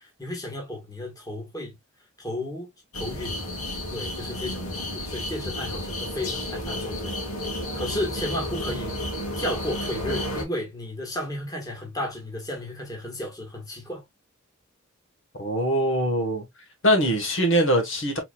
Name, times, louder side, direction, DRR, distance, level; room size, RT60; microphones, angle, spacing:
voice 1, 0.0-1.8 2.2-2.7 2.9-3.4 3.9-8.9 9.3-14.0, left 1 dB, 15° left, 1.6 m, -33 dB
sound 1, 2.9-10.4, left 1 dB, 75° left, 2.3 m, -32 dB
voice 2, 15.4-16.4 16.8-18.2, equal, 55° left, 1.4 m, -22 dB
4.3 x 4.1 x 2.4 m
head